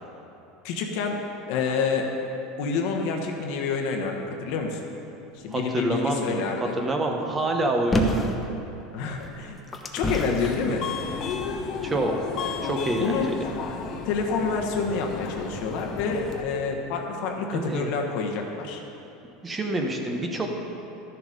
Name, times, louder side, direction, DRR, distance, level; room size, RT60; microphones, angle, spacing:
voice 1, 0.6-1.2 1.5-2.1 2.6-4.8 5.3-6.8 8.9-9.6 9.9-10.8 13.0-13.4 14.0-18.8, left 5 dB, 65° left, 2 dB, 1.2 m, -28 dB
voice 2, 5.5-6.4 6.8-8.2 11.8-12.1 12.6-13.4 17.5-17.9 19.4-20.6, right 2 dB, 20° right, 2 dB, 1.0 m, -27 dB
sound 1, 7.9-8.4 9.2-10.5 11.3-11.4, equal, 15° left, 0.8 m, -26 dB
Subway metro underground, 10.4-16.4, left 6 dB, 45° left, 0.8 m, -33 dB
12.5 x 7.0 x 5.2 m, 2.9 s
supercardioid pair, 135°, 0 cm